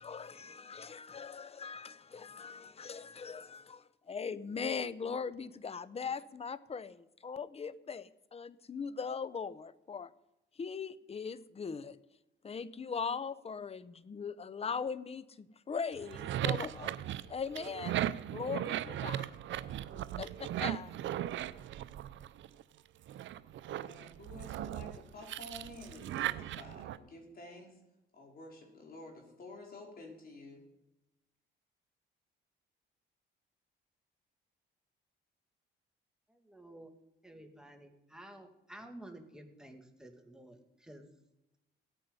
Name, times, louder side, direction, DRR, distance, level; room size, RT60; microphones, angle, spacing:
voice 1, 0.0-10.1 10.5-12.0 12.4-18.0 18.3-19.4 19.9-20.9, left 5 dB, 30° left, 16 dB, 0.8 m, -40 dB
sound 1, 15.9-22.6 23.1-27.0, right 12 dB, 70° right, 0.6 m, -38 dB
voice 2, 23.7-27.8 28.1-30.7, left 2 dB, 50° left, 0 dB, 4.6 m, -51 dB
voice 3, 36.3-36.9 37.2-41.1, right 1 dB, 5° right, 4 dB, 2.3 m, -52 dB
17.0 x 9.0 x 5.5 m, 0.92 s
cardioid pair, 90°, 20 cm